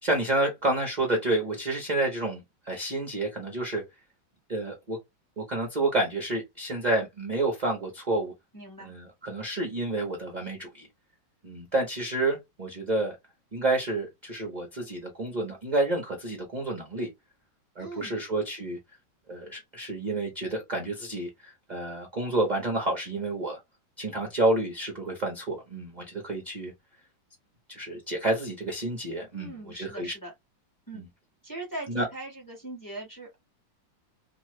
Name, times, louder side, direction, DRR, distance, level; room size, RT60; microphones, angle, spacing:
voice 1, 0.0-3.8 4.5-5.0 5.4-8.3 8.8-10.9 11.4-13.2 13.5-17.1 17.8-18.8 19.3-23.6 24.0-26.7 27.7-30.1 30.9-31.1 31.9-32.1, right 2 dB, 40° right, 0.6 m, -29 dB
voice 2, 8.5-8.9 17.8-18.2 29.3-30.3 30.9-31.0 31.4-33.3, right 2 dB, 10° left, 1.2 m, -40 dB
3.0 x 2.6 x 3.1 m
omnidirectional pair, 2.2 m